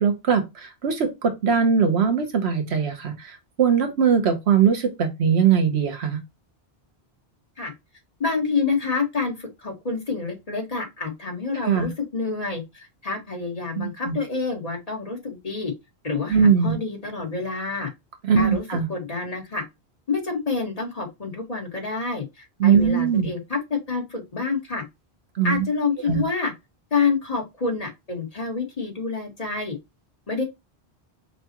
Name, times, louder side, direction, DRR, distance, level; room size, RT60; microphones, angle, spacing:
voice 1, 0.0-6.2 11.6-11.9 13.7-14.2 16.3-16.7 18.2-18.9 22.6-23.3 25.3-25.6 26.1-26.2, right 7 dB, 85° right, 1.2 m, -21 dB
voice 2, 8.2-15.7 16.0-17.9 18.3-18.6 18.9-19.6 20.1-24.8 25.4-26.5 26.9-29.8 30.3-30.4, left 4 dB, 35° left, 1.3 m, -28 dB
5.5 x 2.4 x 2.9 m
omnidirectional pair, 1.1 m